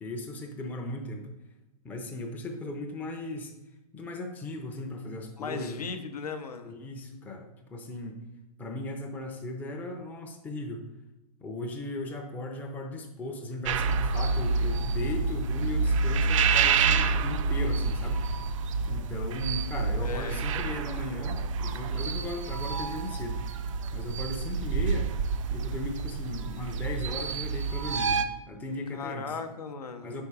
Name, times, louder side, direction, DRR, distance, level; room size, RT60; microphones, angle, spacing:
voice 1, 0.0-1.3 1.8-3.5 3.9-5.8 6.6-8.2 8.6-10.8 11.4-18.2 18.9-23.4 23.9-25.1 25.5-29.4 30.0-30.2, left 2 dB, 10° left, 2 dB, 0.5 m, -37 dB
voice 2, 5.4-6.7 20.0-20.7 28.9-30.1, left 5 dB, 70° left, 7 dB, 0.7 m, -37 dB
sound 1, 13.7-28.2, right 4 dB, 50° right, 0.4 m, -28 dB
4.7 x 4.4 x 4.7 m, 1.0 s
hypercardioid pair, 125°, 20 cm